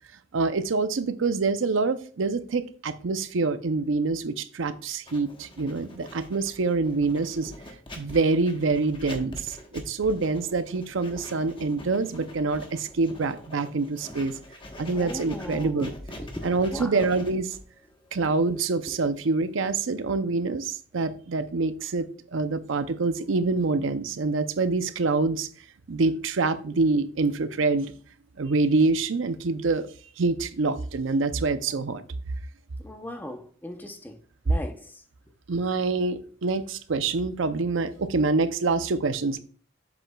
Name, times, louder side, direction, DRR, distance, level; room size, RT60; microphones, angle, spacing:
voice 1, 0.3-7.5 8.0-14.3 14.8-15.9 16.4-17.6 18.1-25.5 25.9-27.9 28.4-29.9 30.2-32.0 35.5-39.4, right 3 dB, 85° right, 0.6 m, -26 dB
Writing, 5.1-19.8, left 1 dB, 25° left, 1.1 m, -44 dB
voice 2, 14.9-15.9 16.2-17.0 32.8-34.1 34.5-34.7, left 1 dB, 10° left, 0.6 m, -37 dB
7.6 x 7.4 x 2.3 m
head